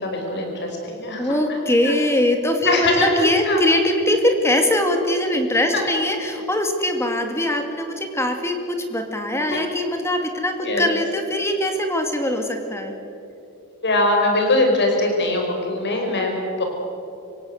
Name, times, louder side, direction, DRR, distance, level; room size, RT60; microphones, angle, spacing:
voice 1, 0.0-1.9 2.6-3.6 9.4-9.6 10.6-10.9 13.8-16.6, left 2 dB, 50° left, 2 dB, 5.2 m, -22 dB
voice 2, 1.2-13.0, left 1 dB, 10° left, 5 dB, 2.1 m, -22 dB
26.5 x 17.0 x 8.0 m, 2.8 s
head